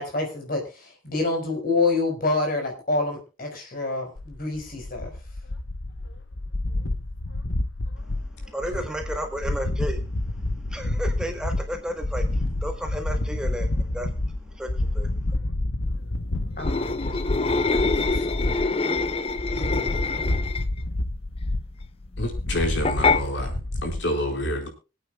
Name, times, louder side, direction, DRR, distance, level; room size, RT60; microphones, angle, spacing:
voice 1, 0.0-5.1 16.6-18.0 18.2-18.4 19.6-20.2, left 3 dB, 50° left, 3 dB, 4.6 m, -28 dB
sound 1, 4.2-24.0, left 1 dB, 90° left, 1.0 m, -29 dB
voice 2, 8.0-15.4, equal, 5° right, 4 dB, 1.2 m, -34 dB
sound 2, 16.6-20.8 22.8-23.2, left 3 dB, 30° left, 0.5 m, -25 dB
voice 3, 22.2-24.7, left 1 dB, 70° left, 3 dB, 4.3 m, -28 dB
26.0 x 8.9 x 2.3 m, 0.31 s
head